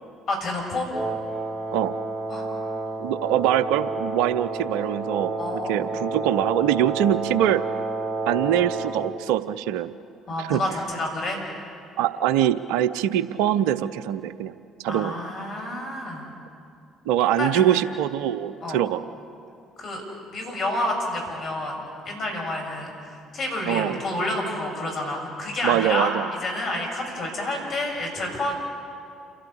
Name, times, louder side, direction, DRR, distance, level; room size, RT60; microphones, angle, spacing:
voice 1, 0.3-0.9 2.3-2.5 5.4-5.9 10.3-11.4 14.9-16.3 17.3-17.8 18.6-18.8 19.8-20.0 20.3-26.1 26.4-28.5, left 1 dB, 55° left, 0 dB, 6.7 m, -29 dB
Wind instrument woodwind instrument, 0.9-9.2, right 2 dB, 35° right, 1.2 m, -30 dB
voice 2, 3.0-7.6 8.3-9.9 10.5-10.6 12.0-14.5 14.8-15.1 17.1-19.0 23.7-24.0 25.6-26.3, right 11 dB, 75° right, 15 dB, 0.6 m, -23 dB
29.0 x 13.0 x 8.5 m, 2.5 s
hypercardioid pair, 55°, 0 cm